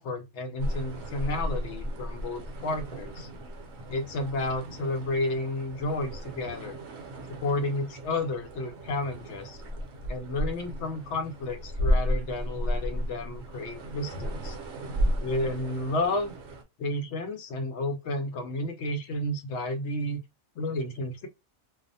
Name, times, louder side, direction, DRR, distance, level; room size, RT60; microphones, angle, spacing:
voice 1, 0.0-3.3 3.9-6.8 7.3-9.6 10.1-14.6 15.2-16.3 16.8-20.2 20.6-21.3, left 2 dB, 70° left, 0.8 m, -31 dB
sound 1, 0.6-16.6, equal, 65° right, 0.9 m, -33 dB
2.4 x 2.0 x 2.6 m
omnidirectional pair, 1.3 m